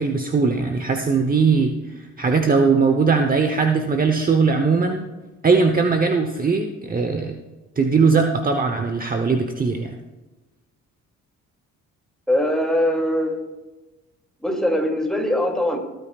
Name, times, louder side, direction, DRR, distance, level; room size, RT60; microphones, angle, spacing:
voice 1, 0.0-5.0 5.4-7.3 7.8-10.0, right 4 dB, 30° right, 5 dB, 1.0 m, -20 dB
voice 2, 12.3-13.3 14.4-15.8, left 1 dB, ahead, 1 dB, 2.7 m, -21 dB
20.5 x 9.1 x 2.4 m, 1.2 s
cardioid pair, 90°, 30 cm